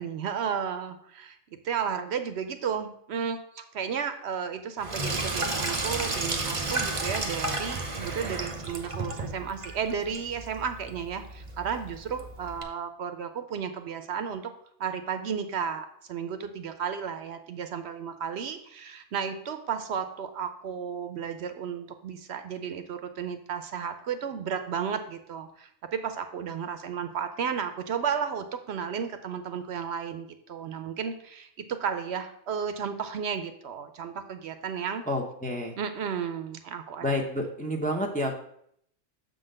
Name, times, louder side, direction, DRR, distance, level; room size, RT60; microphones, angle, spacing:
voice 1, 0.0-1.4 1.6-14.5 14.8-35.0 35.8-37.1, right 7 dB, 65° right, 8 dB, 0.9 m, -33 dB
Sink (filling or washing), 4.8-12.6, right 2 dB, 30° right, 0.8 m, -33 dB
voice 2, 35.1-35.7 37.0-38.5, left 1 dB, 10° left, 2 dB, 0.5 m, -29 dB
6.6 x 3.9 x 6.4 m, 0.69 s
omnidirectional pair, 1.2 m